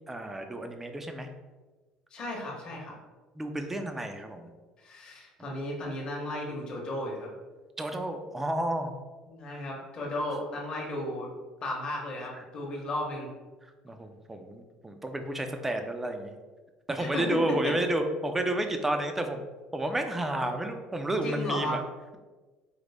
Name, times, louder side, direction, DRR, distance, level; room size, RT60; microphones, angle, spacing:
voice 1, 0.1-1.3 3.4-4.5 7.8-8.9 9.5-9.6 12.3-12.4 13.8-16.3 16.9-19.4 19.7-21.8, right 1 dB, 10° right, 6 dB, 0.4 m, -31 dB
voice 2, 2.1-2.9 4.8-7.3 9.3-11.3 11.6-13.3 17.0-17.7 20.3-20.5 21.2-21.8, left 1 dB, 35° left, -2 dB, 0.9 m, -34 dB
5.0 x 2.0 x 3.3 m, 1.3 s
cardioid pair, 140°, 2 cm